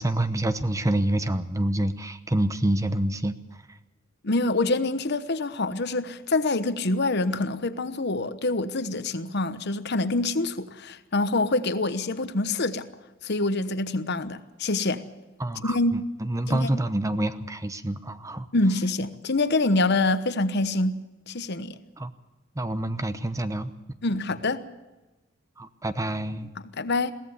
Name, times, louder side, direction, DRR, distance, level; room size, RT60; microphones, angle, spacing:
voice 1, 0.0-3.3 15.4-18.5 22.0-22.1 22.6-23.7 25.6-26.5, right 1 dB, 15° right, 0.9 m, -27 dB
voice 2, 4.2-12.9 13.2-15.0 15.6-15.9 16.5-16.8 18.5-21.0 21.3-21.8 24.0-24.6 26.6-27.1, left 2 dB, 55° left, 1.1 m, -26 dB
22.5 x 16.5 x 7.1 m
head